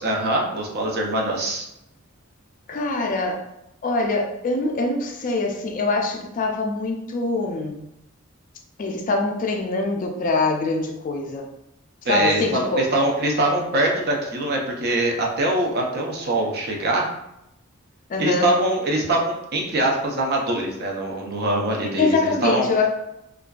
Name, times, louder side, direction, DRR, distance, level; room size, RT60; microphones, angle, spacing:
voice 1, 0.0-1.7 12.1-17.1 18.2-22.6, right 1 dB, 50° right, 0 dB, 0.5 m, -23 dB
voice 2, 2.7-3.5 3.8-7.8 8.8-11.5 12.0-12.9 18.1-18.5 22.0-22.9, left 3 dB, 40° left, 2 dB, 0.3 m, -24 dB
2.4 x 2.2 x 2.2 m, 0.84 s
head